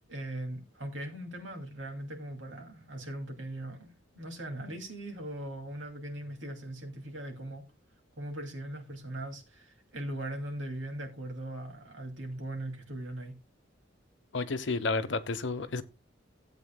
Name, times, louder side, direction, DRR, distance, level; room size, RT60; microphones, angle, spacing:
voice 1, 0.1-7.6 8.2-13.4, right 1 dB, 75° right, 2.6 m, -40 dB
voice 2, 14.3-15.8, left 3 dB, 65° left, 0.9 m, -31 dB
16.0 x 8.3 x 2.2 m
head